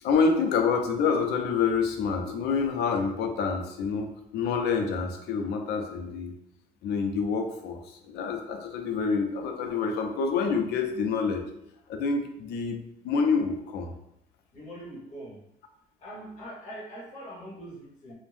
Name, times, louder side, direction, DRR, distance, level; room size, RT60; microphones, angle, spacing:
voice 1, 0.0-6.3 6.8-11.4 11.9-12.8 13.0-13.9, left 5 dB, 90° left, 4 dB, 0.5 m, -27 dB
voice 2, 14.5-15.4 16.0-18.2, right 1 dB, 45° left, -6 dB, 1.1 m, -42 dB
2.6 x 2.1 x 3.2 m, 0.79 s
cardioid pair, 180°, 16 cm